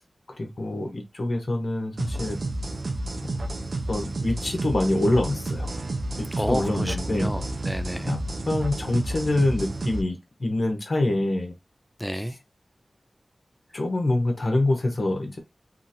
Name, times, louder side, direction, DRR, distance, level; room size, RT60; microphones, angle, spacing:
voice 1, 0.4-2.4 3.2-3.5 3.9-5.7 6.2-7.3 8.0-8.2 8.5-11.5 13.7-15.4, left 2 dB, 60° left, 0.9 m, -25 dB
sound 1, 2.0-10.0, right 2 dB, 80° right, 0.5 m, -31 dB
voice 2, 6.3-8.1 12.0-12.3, equal, 5° left, 0.4 m, -30 dB
2.9 x 2.4 x 2.6 m
wide cardioid pair, 55°, 0 cm